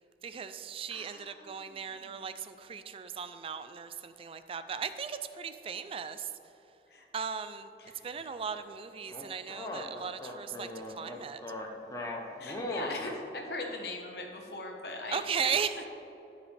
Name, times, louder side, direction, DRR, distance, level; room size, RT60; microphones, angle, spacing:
voice 1, 0.2-6.3 7.1-7.7 8.0-11.4 15.1-15.9, right 6 dB, 30° right, 11 dB, 0.3 m, -37 dB
voice 2, 0.9-2.3 6.9-7.1 7.8-8.0 12.4-15.2, left 2 dB, 65° left, 1 dB, 1.1 m, -41 dB
sound 1, 9.1-13.2, left 1 dB, 20° left, 0.7 m, -39 dB
12.0 x 5.1 x 3.3 m, 3.0 s
head